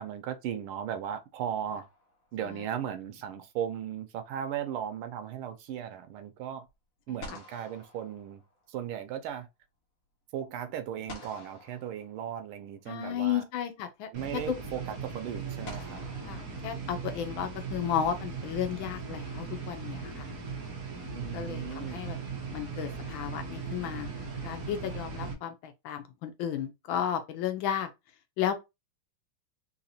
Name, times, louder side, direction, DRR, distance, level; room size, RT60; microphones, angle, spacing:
voice 1, 0.0-1.9 2.3-6.7 7.1-8.4 8.7-9.5 10.3-13.4 14.1-16.1 21.1-22.0, right 9 dB, 85° right, 1.5 m, -36 dB
sound 1, 1.7-2.6 6.7-6.8 7.2-8.9 11.1-12.7 14.0-14.1 15.6-17.3, left 2 dB, 50° left, 1.3 m, -49 dB
voice 2, 12.9-14.1 16.3-20.3 21.3-22.2 22.5-24.1 24.4-27.9 28.4-28.5, left 9 dB, 75° left, 1.3 m, -33 dB
sound 2, 14.1-25.3, right 4 dB, 55° right, 1.1 m, -38 dB
4.0 x 2.8 x 2.6 m
omnidirectional pair, 2.3 m